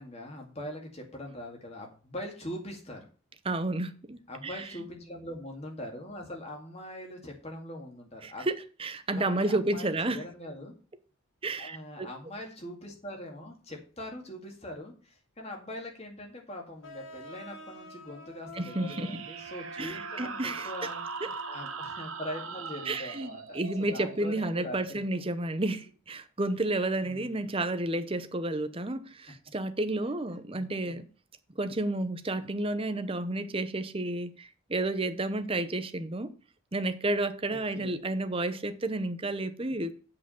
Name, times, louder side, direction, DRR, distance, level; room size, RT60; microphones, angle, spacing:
voice 1, 0.0-3.0 4.3-8.5 9.1-10.7 11.6-21.0 21.5-25.0 27.0-27.4 30.5-31.0 37.5-38.0, left 1 dB, 30° left, 2.2 m, -42 dB
voice 2, 3.4-4.7 8.2-10.2 11.4-12.1 18.5-19.2 19.8-20.7 21.2-21.3 22.9-31.1 31.6-36.3 36.7-39.9, right 2 dB, 25° right, 0.7 m, -31 dB
sound 1, 16.8-22.3, equal, 60° left, 2.2 m, -47 dB
sound 2, 18.6-25.9, right 5 dB, 75° right, 1.2 m, -41 dB
8.4 x 5.0 x 7.2 m
head